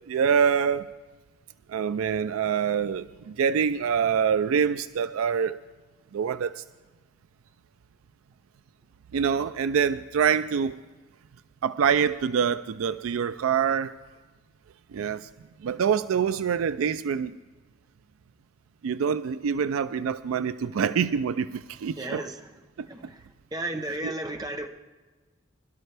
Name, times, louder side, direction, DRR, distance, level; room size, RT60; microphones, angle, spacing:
voice 1, 0.1-0.9 1.7-5.6 6.1-6.6 9.1-10.8 11.6-13.9 14.9-15.3 15.6-17.4 18.8-22.2 22.8-22.9 24.0-24.1, right 7 dB, 90° right, 13 dB, 0.4 m, -25 dB
voice 2, 21.9-22.5 22.9-24.7, right 1 dB, 20° right, 5 dB, 0.8 m, -34 dB
21.5 x 12.5 x 3.3 m, 1.3 s
head